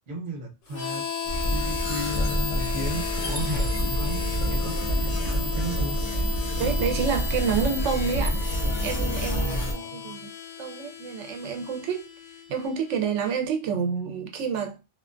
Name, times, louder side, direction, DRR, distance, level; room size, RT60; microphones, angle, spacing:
voice 1, 0.1-1.1 1.5-6.0 9.1-9.9, right 1 dB, 45° right, 0.9 m, -34 dB
Harmonica, 0.7-13.3, left 8 dB, 85° left, 1.0 m, -35 dB
sound 1, 1.3-9.7, equal, 40° left, 0.6 m, -27 dB
voice 2, 6.6-8.4 8.8-10.3 10.6-12.1 12.5-14.8, right 6 dB, 75° right, 0.9 m, -28 dB
2.4 x 2.2 x 2.4 m
omnidirectional pair, 1.3 m